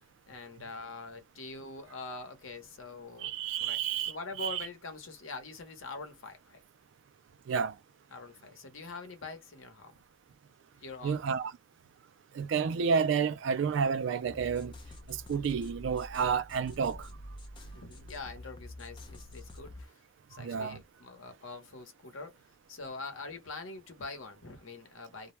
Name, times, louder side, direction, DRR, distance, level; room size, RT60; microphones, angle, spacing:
voice 1, 0.3-3.3 3.6-3.8 4.0-6.6 8.1-10.0 10.8-11.2 16.9-17.0 17.7-20.0 20.3-22.4 22.7-25.3, left 3 dB, 75° left, 0.9 m, -44 dB
voice 2, 3.2-4.7 7.5-7.8 11.0-11.5 12.3-14.7 15.1-17.1 20.3-20.8, right 6 dB, 60° right, 0.3 m, -30 dB
sound 1, 14.2-19.9, left 1 dB, 25° left, 0.4 m, -47 dB
2.2 x 2.1 x 3.0 m
head